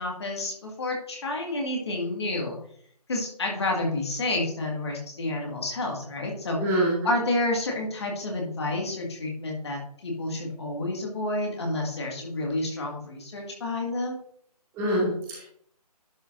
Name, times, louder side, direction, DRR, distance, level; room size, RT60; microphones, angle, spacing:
voice 1, 0.0-2.6 3.1-6.6 7.0-14.2, left 2 dB, 40° left, 0 dB, 1.9 m, -29 dB
voice 2, 6.6-7.1 14.7-15.4, right 1 dB, 10° right, -4 dB, 2.1 m, -25 dB
11.0 x 5.6 x 2.6 m, 0.63 s
figure-of-eight pair, 150°, 21 cm